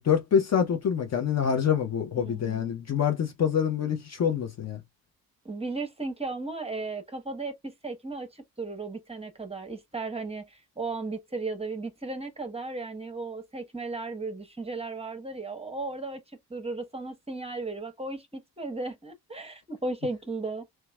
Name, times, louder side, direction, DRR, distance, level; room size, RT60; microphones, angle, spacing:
voice 1, 0.0-4.8, left 8 dB, 30° left, 0.9 m, -26 dB
voice 2, 2.2-2.7 5.4-20.7, right 3 dB, 10° right, 1.1 m, -35 dB
4.6 x 2.9 x 2.3 m
figure-of-eight pair, 45°, 50 cm